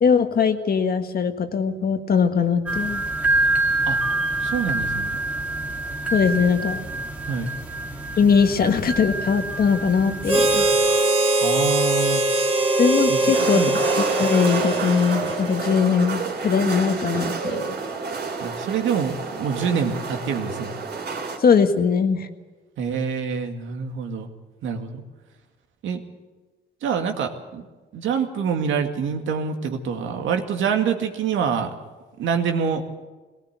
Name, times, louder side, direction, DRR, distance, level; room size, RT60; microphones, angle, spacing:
voice 1, 0.0-3.0 6.1-6.8 8.2-10.7 12.8-13.6 14.0-17.8 21.4-22.3, left 6 dB, 50° left, 7 dB, 1.7 m, -21 dB
sound 1, 2.7-11.0, right 2 dB, 5° right, 2.4 m, -26 dB
voice 2, 4.4-5.2 7.3-7.5 11.4-12.2 13.1-13.8 18.4-20.7 22.8-24.3 24.6-25.0 25.8-26.0 26.8-27.7 27.9-31.7 32.2-32.8, right 6 dB, 80° right, 5 dB, 2.2 m, -26 dB
Harmonica, 10.2-15.7, right 2 dB, 30° right, 3.0 m, -21 dB
sound 2, 13.3-21.4, right 4 dB, 55° right, 3.6 m, -29 dB
18.5 x 18.0 x 8.2 m, 1.3 s
cardioid pair, 90°, 20 cm